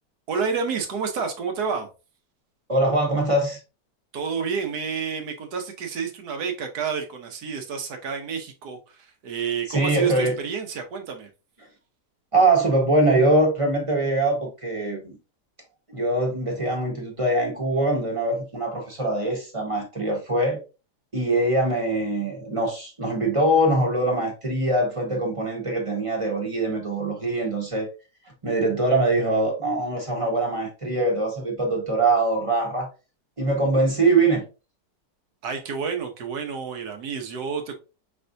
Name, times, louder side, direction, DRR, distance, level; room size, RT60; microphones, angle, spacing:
voice 1, 0.3-1.9 4.1-11.3 35.4-37.8, right 6 dB, 65° right, 1.3 m, -29 dB
voice 2, 2.7-3.6 9.7-10.4 12.3-15.2 15.9-20.6 21.1-27.9 28.4-32.9 33.4-34.4, right 2 dB, 20° right, 1.1 m, -23 dB
5.3 x 3.3 x 2.6 m
omnidirectional pair, 1.9 m